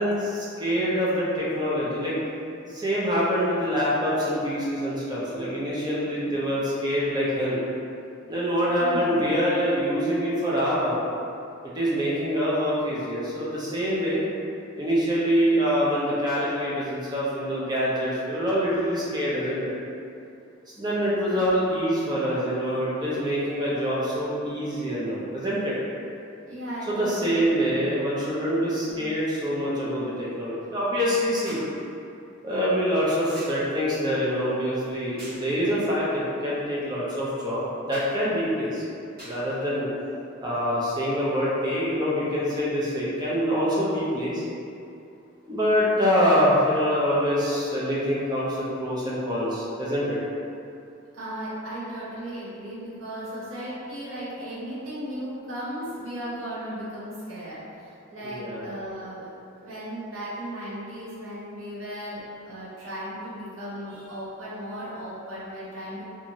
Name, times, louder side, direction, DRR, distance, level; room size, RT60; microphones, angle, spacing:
voice 1, 0.0-2.1 2.7-7.6 8.3-11.0 11.7-14.2 14.8-19.7 20.8-25.7 26.9-31.6 32.4-38.8 39.2-39.9 40.4-44.4 45.5-50.2 58.2-58.7, equal, 20° right, -7 dB, 0.5 m, -25 dB
voice 2, 8.8-9.3 21.3-21.7 26.4-27.8 28.8-29.0 51.1-59.3 59.6-66.1, equal, 75° right, -10 dB, 0.8 m, -36 dB
sound 1, 31.4-31.8 33.3-33.7 35.2-35.5 37.9-38.2 39.2-39.5 40.5-40.6, equal, 50° right, 1.3 m, -44 dB
2.9 x 2.5 x 2.6 m, 2.6 s
head